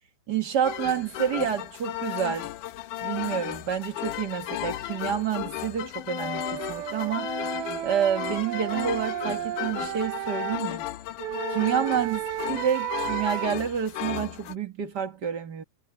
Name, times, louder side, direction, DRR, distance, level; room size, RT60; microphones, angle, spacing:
voice 1, 0.3-2.5 3.0-7.4 7.8-10.8 11.5-15.6, right 8 dB, 45° right, 1.3 m, -28 dB
sound 1, 0.6-14.5, left 14 dB, 70° left, 2.3 m, -34 dB
Wind instrument woodwind instrument, 6.2-10.6 11.2-13.5, right 13 dB, 80° right, 2.8 m, -33 dB
omnidirectional pair, 4.3 m